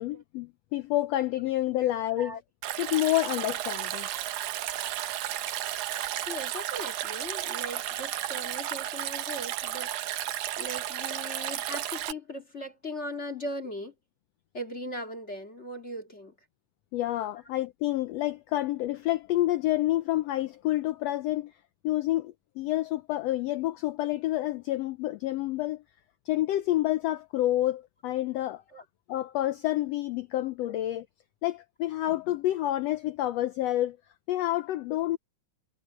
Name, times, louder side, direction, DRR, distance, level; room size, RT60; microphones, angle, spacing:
voice 1, 0.0-2.3 2.8-4.1 16.9-21.5 21.8-25.8 26.3-28.6 29.1-31.1 31.4-34.0 34.3-35.2, left 15 dB, 85° left, 1.4 m, -28 dB
Stream, 2.6-12.1, right 13 dB, 75° right, 2.4 m, -33 dB
voice 2, 6.3-13.9 14.5-16.3 28.7-28.8 30.7-30.8, equal, 25° left, 2.1 m, -39 dB
omnidirectional pair, 3.6 m